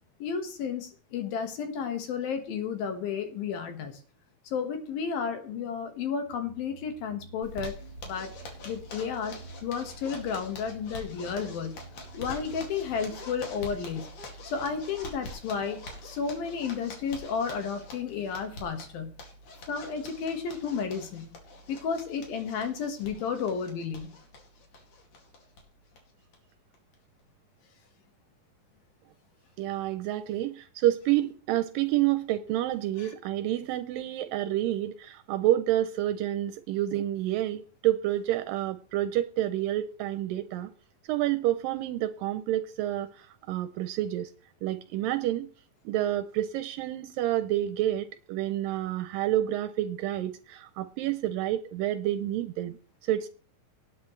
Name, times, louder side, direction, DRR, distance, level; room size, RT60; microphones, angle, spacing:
voice 1, 0.2-3.9 4.5-7.7 8.1-8.3 8.6-11.7 12.1-14.1 14.4-19.1 19.7-21.4 21.7-24.1 33.0-33.1, left 6 dB, 85° left, 3.4 m, -32 dB
sound 1, 6.3-13.1, right 4 dB, 65° right, 1.4 m, -51 dB
Zipper (clothing), 7.4-25.6 25.9-26.0 26.3-26.4 26.7-27.2, left 1 dB, 60° left, 3.6 m, -45 dB
voice 2, 29.6-40.7 41.1-44.3 44.6-45.5 45.9-53.3, right 13 dB, 80° right, 2.3 m, -29 dB
18.5 x 8.7 x 3.2 m
omnidirectional pair, 4.0 m